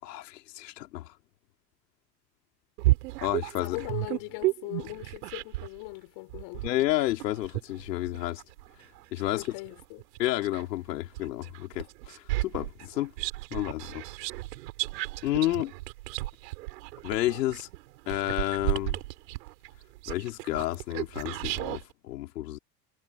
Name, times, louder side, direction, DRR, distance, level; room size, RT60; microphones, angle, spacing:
voice 1, 0.0-1.1 3.2-3.8 6.6-8.4 9.1-9.4 10.2-13.1 13.5-14.0 15.2-15.7 17.0-17.7 18.1-19.0 20.1-22.6, left 16 dB, 85° left, 3.7 m, -30 dB
sound 1, 2.8-5.8 6.3-10.7 11.1-21.8, right 19 dB, 80° right, 5.0 m, -33 dB
voice 2, 3.6-6.7 9.3-10.1, left 27 dB, 65° left, 4.0 m, -39 dB
hypercardioid pair, 95°, 48 cm